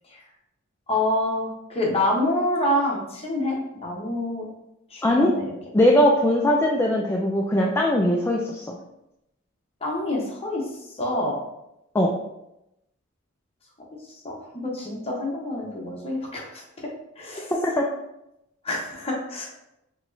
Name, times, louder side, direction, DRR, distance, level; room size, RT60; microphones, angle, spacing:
voice 1, 0.9-4.5 4.9-5.5 9.8-11.4 14.1-16.9 17.2-17.7 18.6-19.5, left 1 dB, 30° left, -2 dB, 1.0 m, -27 dB
voice 2, 5.7-8.8 11.9-12.2 17.8-17.9, left 1 dB, 10° left, -2 dB, 0.3 m, -20 dB
4.5 x 3.0 x 2.6 m, 0.86 s
head